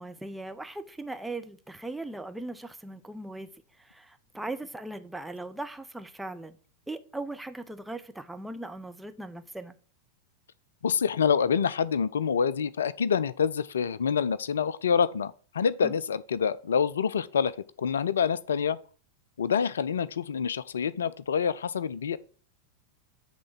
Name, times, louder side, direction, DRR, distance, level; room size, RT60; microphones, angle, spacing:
voice 1, 0.0-3.5 3.8-6.6 6.9-9.7 15.8-15.9, right 2 dB, 5° right, 0.7 m, -39 dB
voice 2, 10.8-17.5 17.8-18.8 19.4-22.2, left 7 dB, 65° left, 0.3 m, -27 dB
8.3 x 3.6 x 6.1 m
figure-of-eight pair, 90°, 0 cm